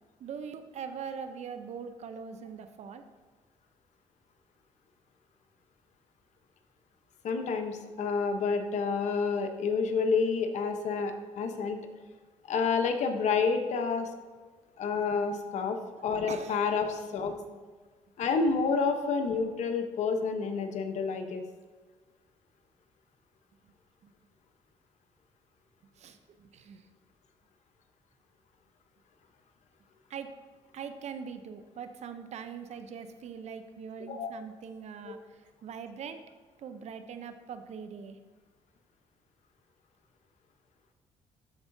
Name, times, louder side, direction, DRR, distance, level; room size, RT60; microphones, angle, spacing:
voice 1, 0.2-3.0 14.9-15.2 16.3-16.7 17.4-17.6 24.0-24.1 26.0-26.9 30.1-30.3 30.7-36.2 36.6-38.2, right 6 dB, 60° right, 9 dB, 0.7 m, -42 dB
voice 2, 7.2-11.8 12.5-14.1 14.8-17.3 18.2-21.4 34.1-34.3, left 5 dB, 65° left, 6 dB, 0.9 m, -29 dB
12.5 x 4.7 x 2.7 m, 1.4 s
supercardioid pair, 75°, 13 cm